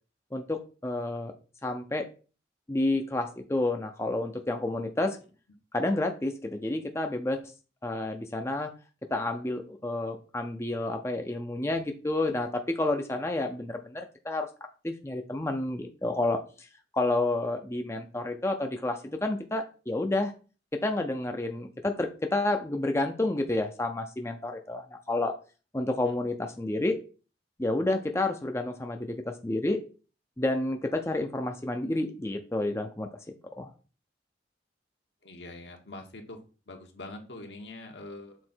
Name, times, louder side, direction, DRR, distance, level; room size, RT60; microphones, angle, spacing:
voice 1, 0.3-1.3 1.6-2.1 2.7-5.2 5.7-7.4 7.8-8.7 9.1-14.5 14.8-16.7 16.9-20.3 20.7-25.3 25.7-27.0 27.6-29.8 30.4-33.1 33.6-33.7, left 2 dB, 15° left, 5 dB, 0.5 m, -30 dB
voice 2, 35.2-36.4 36.7-38.4, left 2 dB, 75° left, 3 dB, 1.3 m, -44 dB
6.4 x 3.8 x 4.4 m, 0.36 s
head